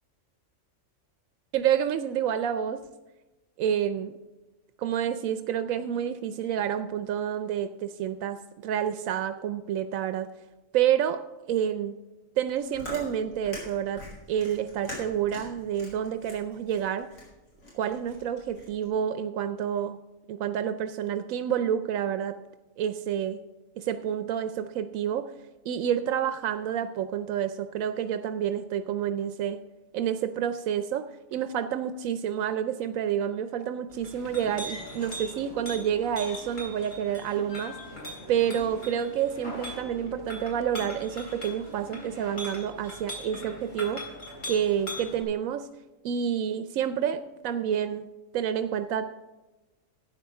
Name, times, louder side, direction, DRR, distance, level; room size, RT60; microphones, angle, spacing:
voice 1, 1.5-2.8 3.6-4.1 4.8-10.3 10.7-11.2 11.5-11.9 12.4-17.1 17.7-20.0 20.3-22.4 22.8-23.4 23.8-25.3 25.6-29.6 29.9-37.8 38.3-44.1 44.5-45.7 46.0-48.1 48.3-49.2, right 9 dB, 85° right, 10 dB, 1.0 m, -29 dB
Chewing mastication, 12.4-18.9, left 1 dB, 90° left, 4.8 m, -44 dB
Chink clink, 33.9-45.2, equal, 70° left, 4.0 m, -40 dB
13.0 x 9.2 x 4.7 m, 1.1 s
omnidirectional pair, 1.4 m